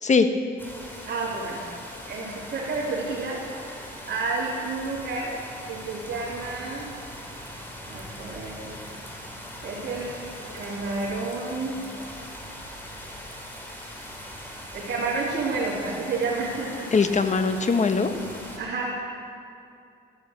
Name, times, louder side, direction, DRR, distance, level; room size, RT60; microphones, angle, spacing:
sound 1, 0.6-18.6, equal, 10° left, 3.9 m, -41 dB
voice 1, 1.1-1.7 2.1-6.9 7.9-9.0 9.6-11.9 14.7-16.9 18.6-19.3, right 3 dB, 55° right, -8 dB, 3.9 m, -31 dB
voice 2, 16.9-18.1, left 4 dB, 35° left, 8 dB, 1.3 m, -21 dB
13.5 x 11.0 x 8.2 m, 2.5 s
cardioid pair, 90°, 20 cm